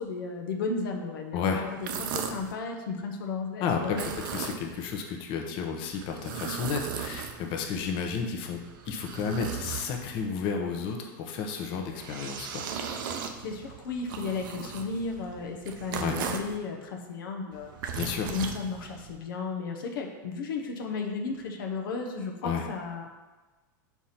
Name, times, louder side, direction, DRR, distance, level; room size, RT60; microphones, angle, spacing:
voice 1, 0.0-4.2 13.4-17.7 18.2-23.1, left 4 dB, 80° left, 2 dB, 0.9 m, -34 dB
voice 2, 1.3-1.6 3.6-12.7 16.0-16.2 17.9-18.3 22.4-22.6, left 6 dB, 50° left, 2 dB, 0.9 m, -32 dB
sound 1, 1.7-2.5 3.8-4.9 5.9-7.7 8.4-10.3 11.7-16.6 17.5-19.2, right 7 dB, 70° right, 0.7 m, -37 dB
4.7 x 4.3 x 5.7 m, 1.2 s
supercardioid pair, 120°, 11 cm